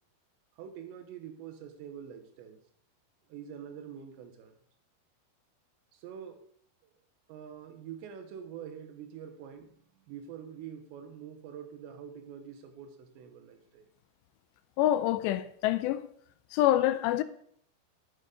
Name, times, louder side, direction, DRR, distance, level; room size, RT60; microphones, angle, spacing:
voice 1, 0.6-2.6 3.3-4.6 5.9-6.4 7.3-9.7 10.1-13.9, right 8 dB, 85° right, 3.3 m, -45 dB
voice 2, 14.8-16.1 16.5-17.2, left 13 dB, 85° left, 2.7 m, -26 dB
10.5 x 8.2 x 3.9 m
omnidirectional pair, 5.0 m